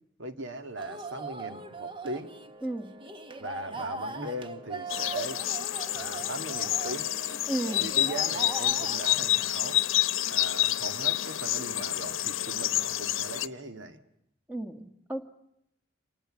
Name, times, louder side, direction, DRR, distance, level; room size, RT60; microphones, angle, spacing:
voice 1, 0.2-2.3 3.4-5.4 5.9-7.1 7.8-9.8 10.3-14.0, right 1 dB, 70° right, 8 dB, 1.9 m, -39 dB
sound 1, 0.8-9.2, right 3 dB, 25° right, 1.2 m, -40 dB
voice 2, 2.6-2.9 7.5-7.9 14.5-15.2, right 1 dB, 10° right, 7 dB, 1.8 m, -33 dB
sound 2, 4.9-13.5, left 14 dB, 90° left, 0.9 m, -28 dB
26.5 x 19.0 x 9.9 m, 0.78 s
head